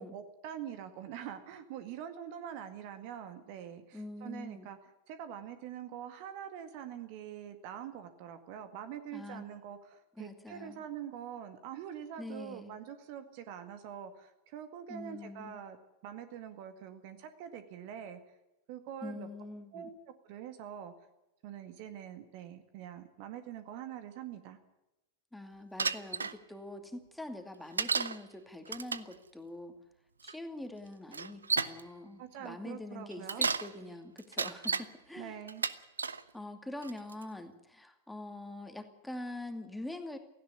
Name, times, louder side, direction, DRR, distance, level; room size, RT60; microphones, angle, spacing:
voice 1, 0.0-4.8 5.1-15.8 16.0-18.2 18.7-19.3 19.7-20.9 21.4-24.6 32.2-33.4 35.2-35.7, right 9 dB, 45° right, 10 dB, 1.9 m, -44 dB
voice 2, 3.9-4.7 9.1-9.4 10.2-10.8 12.2-12.7 14.9-15.6 19.0-19.9 25.3-29.7 30.2-35.4 36.3-40.2, left 2 dB, 5° left, 6 dB, 2.4 m, -44 dB
Bicycle, 25.8-26.3 27.8-28.2 28.7-29.1 30.2-30.3 31.1-31.8 33.1-33.7 34.2-34.9 35.5-36.2 36.8-37.2, right 5 dB, 75° right, 0.8 m, -32 dB
17.5 x 16.0 x 9.7 m, 0.94 s
figure-of-eight pair, 90°, 0 cm